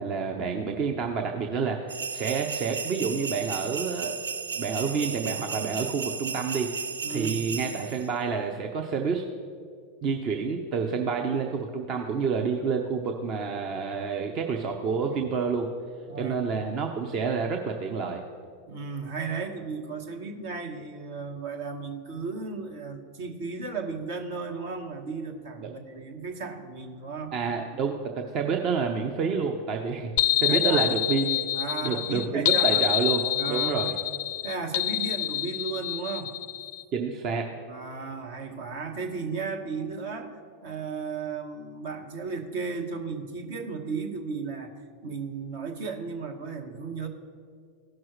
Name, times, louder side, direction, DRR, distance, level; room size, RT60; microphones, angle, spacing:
voice 1, 0.0-4.1 4.5-6.7 7.1-9.2 10.0-15.7 16.2-18.2 25.6-25.7 27.3-30.1 30.4-31.4 31.8-33.2 33.5-33.9 36.9-37.5, right 5 dB, 45° right, 3 dB, 0.8 m, -28 dB
sound 1, 1.9-8.1, right 5 dB, 85° right, 0.4 m, -34 dB
voice 2, 7.0-7.5 16.1-16.8 18.7-27.3 30.5-30.9 31.5-32.8 33.4-33.9 34.4-36.3 37.7-44.7 45.0-47.1, right 4 dB, 65° right, 3 dB, 1.2 m, -35 dB
sound 2, 30.2-36.8, left 14 dB, 60° left, 0.4 m, -27 dB
15.5 x 6.1 x 3.2 m, 2.2 s
hypercardioid pair, 95°, 0 cm